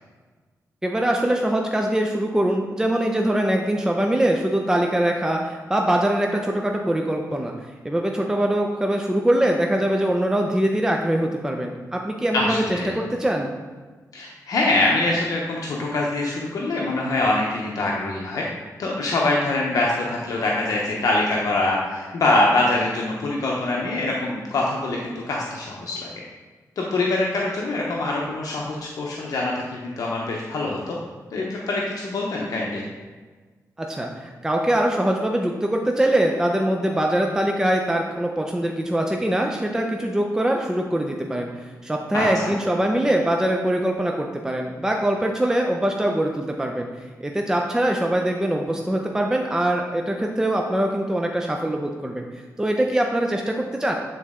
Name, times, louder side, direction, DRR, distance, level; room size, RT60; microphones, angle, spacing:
voice 1, 0.8-7.5 7.8-13.5 33.8-54.0, right 1 dB, 10° right, 1 dB, 0.5 m, -23 dB
voice 2, 12.3-12.9 14.1-18.4 18.8-26.2 26.8-31.0 31.3-32.9 42.1-42.5, left 2 dB, 70° left, -3 dB, 0.8 m, -24 dB
8.5 x 4.0 x 3.6 m, 1.4 s
wide cardioid pair, 105°, 6 cm